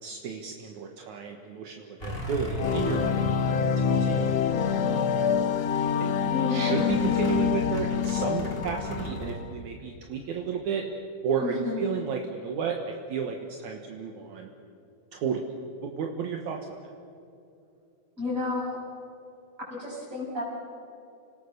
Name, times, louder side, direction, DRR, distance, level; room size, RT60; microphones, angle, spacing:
voice 1, 0.0-3.3 3.8-4.3 5.8-10.9 11.2-14.5 15.1-15.4 15.8-16.6, right 6 dB, 70° right, 2 dB, 2.7 m, -32 dB
sound 1, 2.0-5.0 5.3-5.9 6.8-9.3, left 1 dB, 20° left, 3.7 m, -37 dB
sound 2, 2.6-9.5, left 7 dB, 65° left, 2.0 m, -26 dB
voice 2, 6.3-6.9 11.4-11.8 18.2-18.8 19.6-20.4, left 3 dB, 20° right, -3 dB, 7.3 m, -31 dB
30.0 x 19.5 x 6.7 m, 2.7 s
omnidirectional pair, 3.6 m